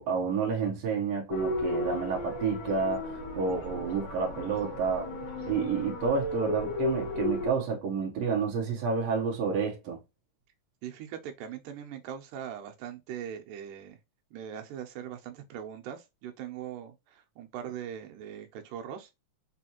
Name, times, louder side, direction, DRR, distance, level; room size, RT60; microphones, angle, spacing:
voice 1, 0.0-5.1 5.4-10.0, right 5 dB, 65° right, 2.0 m, -30 dB
sound 1, 1.3-7.5, left 1 dB, 55° left, 2.0 m, -34 dB
voice 2, 10.8-14.0 14.3-19.1, right 9 dB, 85° right, 2.3 m, -41 dB
5.5 x 2.5 x 2.8 m
omnidirectional pair, 3.6 m